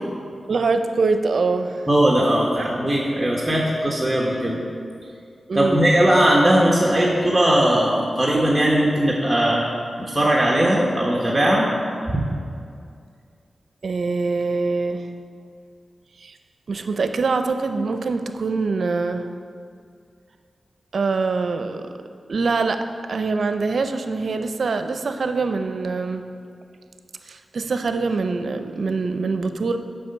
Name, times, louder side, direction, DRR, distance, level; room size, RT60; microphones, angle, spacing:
voice 1, 0.5-1.9 2.6-2.7 5.5-5.9 13.8-15.1 16.2-16.3 16.7-19.3 20.9-21.9 22.3-26.2 27.2-29.8, right 4 dB, 70° right, 8 dB, 0.5 m, -24 dB
voice 2, 1.9-4.6 5.5-9.6 10.0-11.7 12.1-12.3, right 1 dB, 15° right, -3 dB, 1.3 m, -19 dB
7.7 x 5.7 x 6.8 m, 2.3 s
cardioid pair, 50°, 0 cm